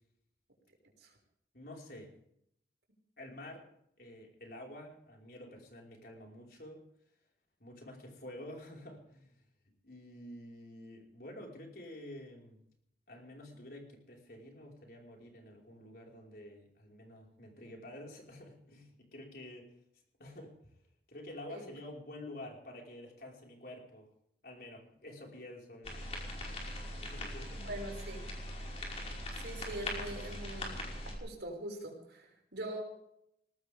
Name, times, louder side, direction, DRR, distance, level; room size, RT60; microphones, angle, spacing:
voice 1, 1.5-2.1 3.2-3.7 4.0-6.8 7.6-9.3 9.8-12.6 13.1-19.7 20.2-20.5 21.1-24.1 24.4-26.0 26.5-26.7 27.0-27.7, left 1 dB, 55° left, -1 dB, 5.2 m, -49 dB
sound 1, 25.8-31.2, left 1 dB, 35° left, 5.4 m, -41 dB
voice 2, 27.6-28.3 29.3-30.8 31.2-32.8, right 1 dB, 90° right, 1 dB, 6.0 m, -42 dB
21.5 x 18.0 x 3.7 m, 0.73 s
head